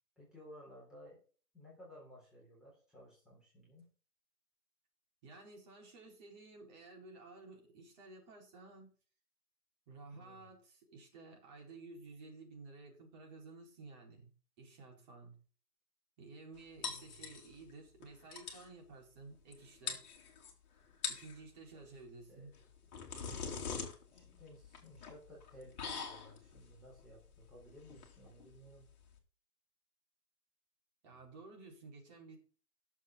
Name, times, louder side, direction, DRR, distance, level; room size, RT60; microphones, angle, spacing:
voice 1, 0.2-1.2 1.5-3.9 10.1-10.5 16.8-17.3 21.7-21.8 22.3-22.5 24.1-28.9 31.1-31.2, equal, ahead, -6 dB, 3.7 m, -57 dB
voice 2, 5.2-8.9 9.9-14.3 14.6-15.4 16.2-20.1 21.1-22.5 31.0-32.4, right 3 dB, 25° right, -1 dB, 4.6 m, -54 dB
sound 1, 16.8-17.7 18.0-18.1 18.3-18.7 19.5-19.6 19.9-20.5 20.9-21.4 22.5-29.2, left 5 dB, 25° left, 2.9 m, -43 dB
19.0 x 7.4 x 3.9 m, 0.40 s
figure-of-eight pair, 140°, 49 cm